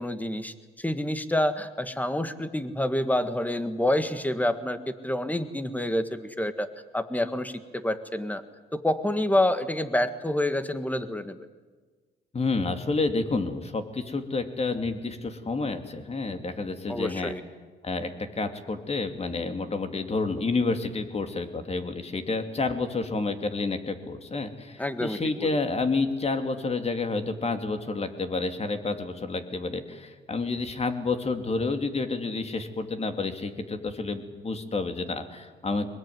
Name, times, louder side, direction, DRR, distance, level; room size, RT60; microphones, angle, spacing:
voice 1, 0.0-6.7 6.9-8.4 8.7-11.4 16.9-17.4 24.8-25.5, left 1 dB, 10° left, 10 dB, 1.8 m, -28 dB
voice 2, 12.3-17.3 17.8-35.9, left 3 dB, 30° left, 7 dB, 2.6 m, -29 dB
22.5 x 20.5 x 9.5 m, 1.4 s
cardioid pair, 90°, 20 cm